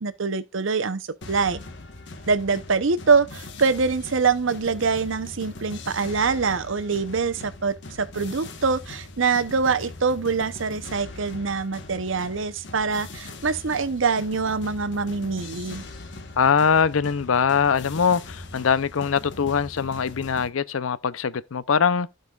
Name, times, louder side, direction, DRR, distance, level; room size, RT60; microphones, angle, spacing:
voice 1, 0.0-1.6 2.3-15.8, right 4 dB, 70° right, 0.8 m, -24 dB
sound 1, 1.2-20.5, left 2 dB, 60° left, 1.2 m, -41 dB
voice 2, 16.4-22.1, left 6 dB, 85° left, 0.5 m, -22 dB
16.0 x 5.3 x 2.4 m
head